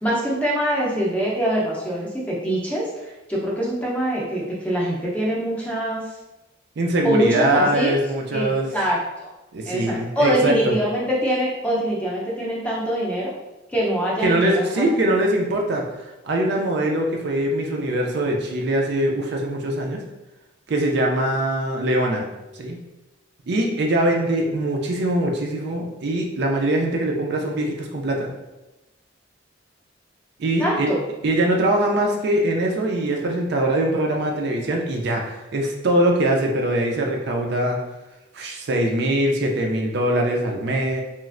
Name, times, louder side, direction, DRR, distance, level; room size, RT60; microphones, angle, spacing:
voice 1, 0.0-6.1 7.0-8.0 8.3-9.3 9.7-13.3 13.7-14.9 30.6-31.0, right 1 dB, 5° left, -5 dB, 0.5 m, -24 dB
voice 2, 6.8-8.7 9.5-10.7 14.2-15.8 16.2-20.0 20.7-22.3 22.6-22.8 23.5-28.3 30.4-30.9 31.2-37.8 38.3-41.0, right 1 dB, 55° right, 1 dB, 0.4 m, -22 dB
3.0 x 2.4 x 2.4 m, 1.0 s
head